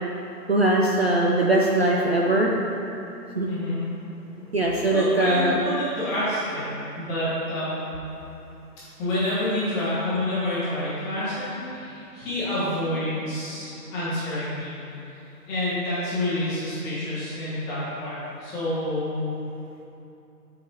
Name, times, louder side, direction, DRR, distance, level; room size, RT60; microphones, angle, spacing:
voice 1, 0.5-2.5 3.4-3.5 4.5-5.7, right 1 dB, 40° right, -2 dB, 0.4 m, -21 dB
voice 2, 3.4-3.8 4.9-7.8 9.0-14.7 15.5-19.3, left 1 dB, 5° left, -12 dB, 0.8 m, -28 dB
12.5 x 4.8 x 3.0 m, 2.8 s
hypercardioid pair, 155°, 49 cm